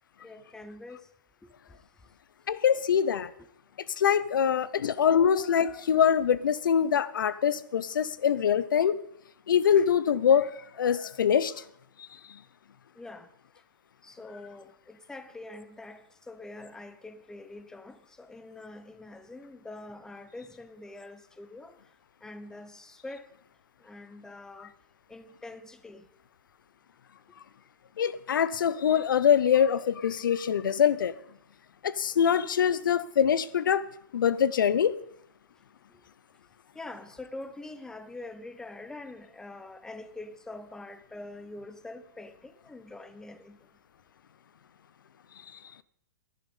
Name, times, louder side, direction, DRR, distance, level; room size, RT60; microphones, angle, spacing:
voice 1, 0.2-1.1 1.4-1.8 12.9-13.3 14.0-21.9 22.2-23.3 23.8-24.7 25.1-26.1 35.6-35.7 35.9-36.0 36.7-43.7, left 2 dB, 5° left, 0.8 m, -45 dB
voice 2, 2.5-3.3 4.0-9.0 9.5-11.6 12.0-12.4 28.0-31.2 31.8-34.9, left 8 dB, 90° left, 0.7 m, -24 dB
11.0 x 10.5 x 5.4 m
hypercardioid pair, 145°, 11 cm